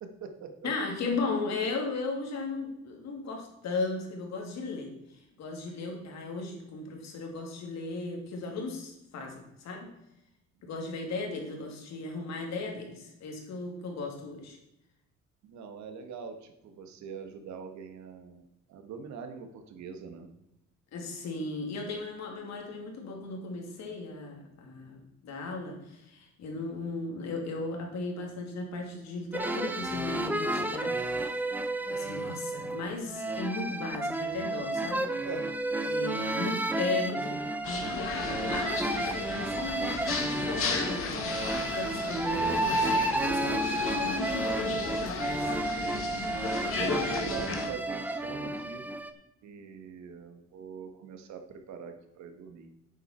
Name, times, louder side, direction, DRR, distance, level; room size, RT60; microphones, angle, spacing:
voice 1, 0.0-0.7 15.5-18.4 18.7-20.3 35.2-36.1 46.0-46.2 46.7-48.8 49.4-52.7, right 6 dB, 70° right, 5 dB, 1.6 m, -43 dB
voice 2, 0.6-4.9 5.4-9.9 10.6-14.6 20.9-31.3 31.9-35.1 35.9-41.5 41.7-45.5, left 3 dB, 65° left, 1 dB, 2.9 m, -36 dB
sound 1, 29.3-49.1, right 2 dB, 5° right, 0.7 m, -31 dB
sound 2, 37.6-47.7, left 4 dB, 50° left, 1.9 m, -35 dB
11.5 x 8.3 x 4.5 m, 0.87 s
cardioid pair, 155°, 29 cm